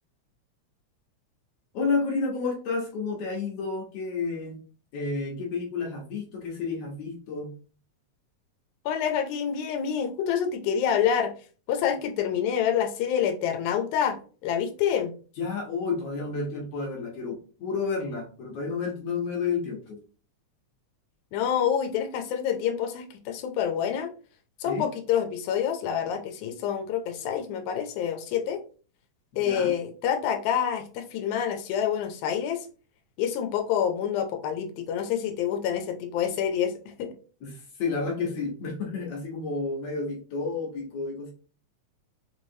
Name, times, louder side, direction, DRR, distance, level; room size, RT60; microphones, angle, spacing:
voice 1, 1.7-4.6 4.9-7.5 15.4-20.0 24.6-24.9 29.3-29.7 37.4-41.3, left 4 dB, 65° left, 0 dB, 1.8 m, -31 dB
voice 2, 8.9-11.3 11.7-15.1 21.3-24.1 24.6-28.6 29.4-32.7 33.2-37.1, left 8 dB, 90° left, 4 dB, 2.0 m, -27 dB
5.2 x 3.0 x 2.7 m, 0.39 s
omnidirectional pair, 3.3 m